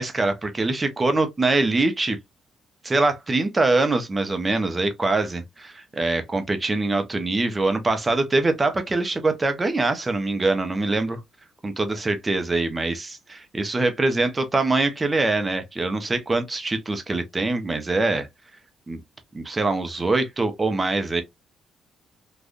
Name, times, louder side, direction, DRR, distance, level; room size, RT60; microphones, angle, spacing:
voice 1, 0.0-2.2 2.8-11.2 11.6-18.3 18.9-19.0 19.3-21.2, right 2 dB, 25° right, 0.9 m, -23 dB
3.6 x 2.5 x 2.5 m
cardioid pair, 90°, 0 cm